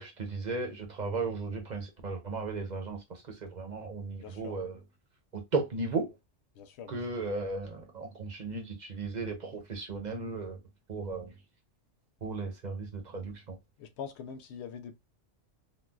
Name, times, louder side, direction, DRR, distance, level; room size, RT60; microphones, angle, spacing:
voice 1, 0.0-4.8 5.3-6.1 6.9-10.6 10.9-11.4 12.2-13.6, right 3 dB, 40° right, 0.9 m, -35 dB
voice 2, 4.2-4.5 6.5-7.0 13.8-15.0, left 7 dB, 70° left, 0.8 m, -43 dB
3.9 x 2.2 x 2.3 m
omnidirectional pair, 1.2 m